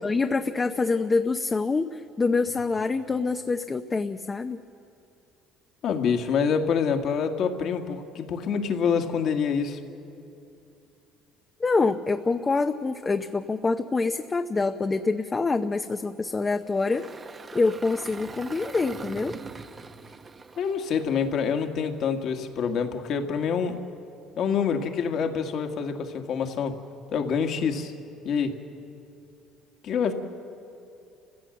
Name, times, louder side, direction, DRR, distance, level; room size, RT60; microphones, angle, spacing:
voice 1, 0.0-4.6 11.6-17.0 17.5-19.4, left 3 dB, 20° left, 6 dB, 0.7 m, -26 dB
voice 2, 5.8-9.8 20.6-23.8 24.4-26.8 27.1-27.9 28.2-28.6 29.8-30.1, left 6 dB, 60° left, 5 dB, 1.8 m, -26 dB
Engine, 16.6-21.9, right 4 dB, 25° right, 0.8 m, -42 dB
29.5 x 16.0 x 7.8 m, 2.6 s
cardioid pair, 115°, 0 cm